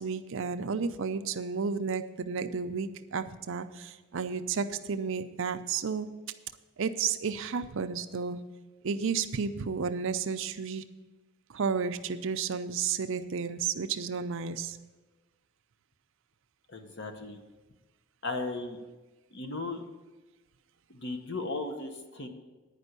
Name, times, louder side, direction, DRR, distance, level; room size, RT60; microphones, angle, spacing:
voice 1, 0.0-6.1 6.8-8.4 8.8-10.8 11.5-14.8, right 5 dB, 60° right, 9 dB, 0.5 m, -32 dB
voice 2, 16.7-17.4 18.2-18.8 19.3-19.8 20.9-22.3, left 3 dB, 55° left, 5 dB, 1.0 m, -36 dB
10.0 x 5.3 x 8.1 m, 1.2 s
head